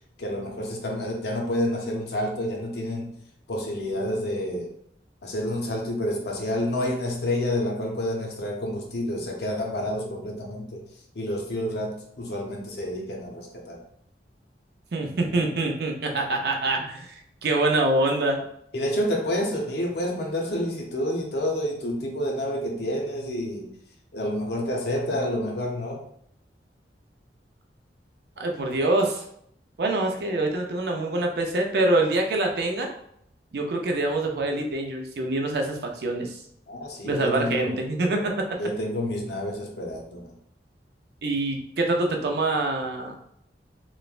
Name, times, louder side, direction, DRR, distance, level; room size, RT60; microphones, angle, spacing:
voice 1, 0.2-3.1 3.5-4.7 5.2-10.8 11.1-13.8 18.7-23.7 24.1-26.0 36.7-37.8 38.5-40.3, left 1 dB, 65° left, 0 dB, 0.6 m, -29 dB
voice 2, 14.9-18.4 28.4-29.2 29.8-32.9 33.5-36.4 37.0-38.3 41.2-43.1, right 2 dB, 60° right, 2 dB, 0.4 m, -25 dB
3.1 x 2.0 x 2.4 m, 0.71 s
head